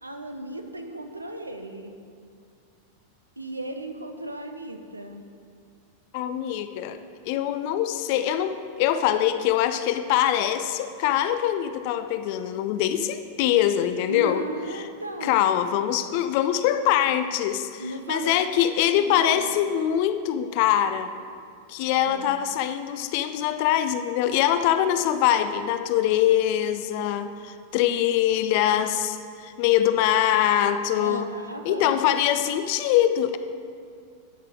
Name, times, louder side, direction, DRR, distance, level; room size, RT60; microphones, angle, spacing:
voice 1, 0.0-2.0 3.4-5.2 14.1-15.4 17.8-19.5 21.9-22.3 31.0-32.0, right 1 dB, 85° right, 6 dB, 0.7 m, -35 dB
voice 2, 6.1-7.0 7.2-14.4 15.2-21.1 21.7-31.3 31.7-33.4, left 11 dB, 45° left, 10 dB, 0.4 m, -23 dB
13.0 x 5.8 x 3.7 m, 2.3 s
figure-of-eight pair, 90°, 0 cm